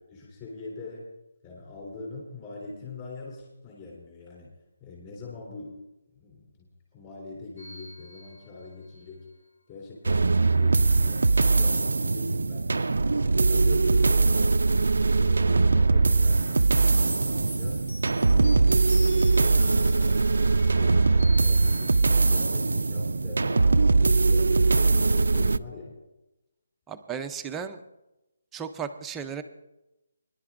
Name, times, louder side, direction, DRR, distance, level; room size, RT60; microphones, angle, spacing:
voice 1, 0.1-1.1 1.4-4.5 4.8-5.8 6.1-9.3 9.7-12.9 13.2-14.6 15.1-17.8 18.2-18.6 19.0-23.7 24.1-25.9, left 3 dB, 20° left, -4 dB, 3.4 m, -42 dB
sound 1, 7.6-9.1 17.1-22.8, left 1 dB, 55° left, 1.4 m, -45 dB
sound 2, 10.0-25.6, right 3 dB, 90° right, 0.4 m, -21 dB
voice 2, 26.9-27.8 28.5-29.4, right 7 dB, 5° right, 6 dB, 0.4 m, -35 dB
25.0 x 11.0 x 2.5 m, 0.95 s
hypercardioid pair, 175°, 0 cm